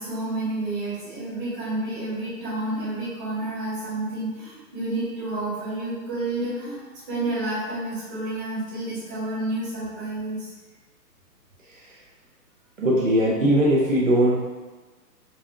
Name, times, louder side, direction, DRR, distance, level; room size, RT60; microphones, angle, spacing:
voice 1, 0.0-10.5, right 2 dB, 10° right, -16 dB, 1.0 m, -30 dB
voice 2, 12.8-14.4, right 1 dB, 50° right, -5 dB, 0.7 m, -20 dB
5.5 x 2.5 x 2.5 m, 1.3 s
hypercardioid pair, 180°, 50 cm